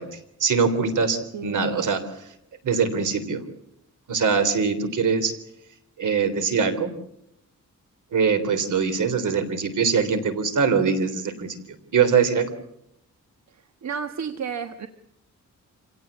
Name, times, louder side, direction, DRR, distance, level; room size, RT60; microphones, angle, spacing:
voice 1, 0.0-2.0 2.6-3.4 4.1-5.3 6.0-6.9 8.1-11.6 11.9-12.5, right 5 dB, 75° right, 10 dB, 3.6 m, -22 dB
voice 2, 1.3-1.9 13.5-14.9, right 6 dB, 60° right, 9 dB, 1.4 m, -33 dB
27.0 x 17.5 x 8.3 m, 0.77 s
wide cardioid pair, 125°, 31 cm